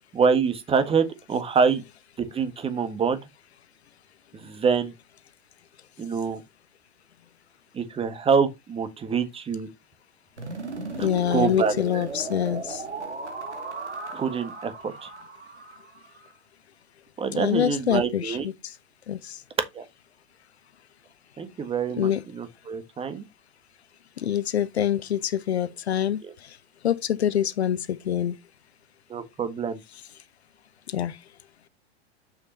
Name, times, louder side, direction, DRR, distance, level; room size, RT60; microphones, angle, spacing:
voice 1, 0.1-1.8 2.2-3.2 4.3-4.9 6.0-6.4 7.7-9.7 11.0-12.0 14.1-15.1 17.2-18.5 19.7-19.8 21.4-23.2 26.2-26.3 29.1-29.8, right 5 dB, 15° right, 1.6 m, -26 dB
sound 1, 10.4-16.3, right 3 dB, 85° right, 2.4 m, -36 dB
voice 2, 11.0-12.8 17.3-18.7 19.1-19.4 22.0-22.2 24.2-26.6 26.8-28.4 30.9-31.2, left 10 dB, 70° left, 0.9 m, -26 dB
7.5 x 6.5 x 2.9 m
figure-of-eight pair, 100°, 34 cm